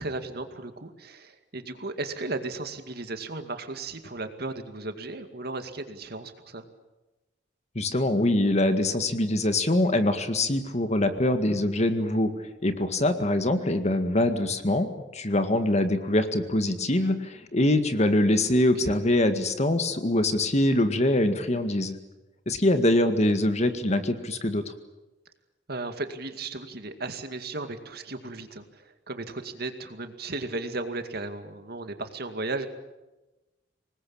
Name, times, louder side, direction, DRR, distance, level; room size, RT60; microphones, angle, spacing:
voice 1, 0.0-6.6 18.8-19.0 25.7-32.7, right 2 dB, 60° right, 8 dB, 2.3 m, -35 dB
voice 2, 7.8-22.0 22.5-24.7, left 1 dB, 40° left, 8 dB, 1.9 m, -24 dB
25.5 x 20.0 x 8.8 m, 1.1 s
head